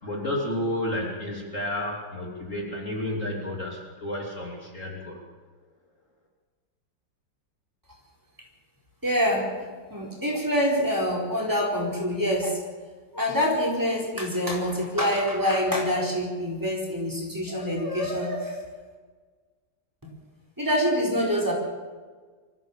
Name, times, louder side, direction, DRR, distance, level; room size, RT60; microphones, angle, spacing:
voice 1, 0.0-5.2, left 1 dB, 40° left, -1 dB, 3.4 m, -31 dB
voice 2, 9.0-9.5 9.9-12.6 13.1-18.5 20.6-21.5, equal, 10° right, -2 dB, 4.4 m, -25 dB
24.5 x 14.5 x 7.4 m, 1.5 s
omnidirectional pair, 2.0 m